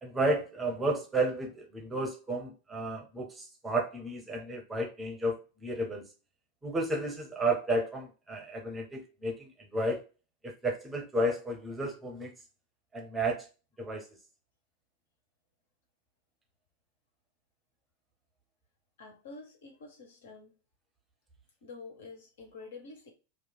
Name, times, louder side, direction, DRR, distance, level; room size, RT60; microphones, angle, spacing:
voice 1, 0.0-6.0 6.6-10.0 10.4-12.3 12.9-13.5 13.8-14.0, right 1 dB, 10° right, 2 dB, 0.7 m, -32 dB
voice 2, 19.0-20.5 21.6-23.1, left 4 dB, 60° left, 2 dB, 0.8 m, -48 dB
3.0 x 2.3 x 2.2 m, 0.32 s
figure-of-eight pair, 90°, 0 cm